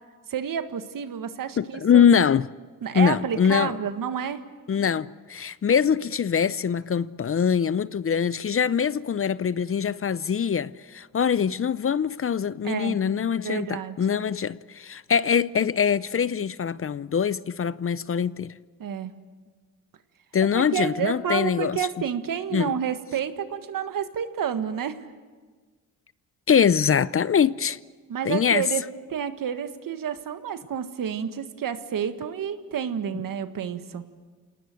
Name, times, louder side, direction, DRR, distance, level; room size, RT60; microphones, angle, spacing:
voice 1, 0.3-2.0 2.8-4.4 12.6-13.0 13.4-14.0 18.8-19.1 20.5-25.0 28.1-28.8 29.1-34.0, right 8 dB, 65° right, 1.7 m, -29 dB
voice 2, 1.6-2.5 2.9-3.8 4.7-18.5 20.3-21.8 22.5-22.8 26.5-27.8 28.2-28.6, left 7 dB, 40° left, 0.6 m, -23 dB
28.0 x 19.0 x 7.8 m
cardioid pair, 65°, 35 cm